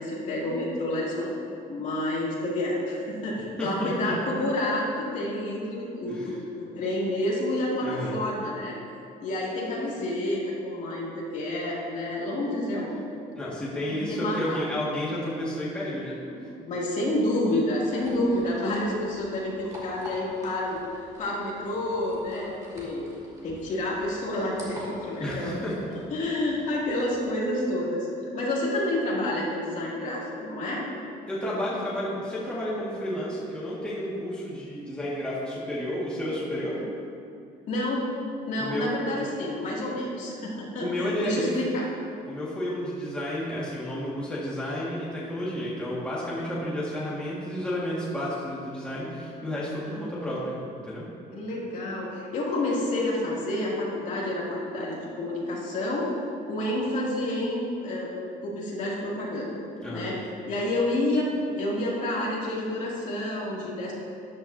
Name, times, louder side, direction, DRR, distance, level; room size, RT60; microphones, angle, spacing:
voice 1, 0.0-1.3 1.7-8.7 9.2-13.0 13.9-14.6 16.3-20.8 21.2-23.1 23.4-25.5 26.1-28.1 28.3-30.8 37.7-38.0 38.5-41.8 49.9-50.1 50.3-50.5 51.3-58.1 58.4-59.6 59.9-60.2 60.5-61.3 61.5-63.9, left 1 dB, 50° left, -5 dB, 2.6 m, -29 dB
voice 2, 3.6-4.1 6.1-6.3 7.8-8.2 13.3-16.5 25.2-25.7 31.3-36.8 38.6-38.9 40.8-41.5 42.2-50.6 50.8-51.1 59.8-60.1, left 1 dB, 5° left, -8 dB, 1.8 m, -31 dB
sound 1, 17.8-27.3, equal, 20° right, 2.3 m, -46 dB
13.0 x 10.5 x 2.7 m, 2.5 s
cardioid pair, 155°, 16 cm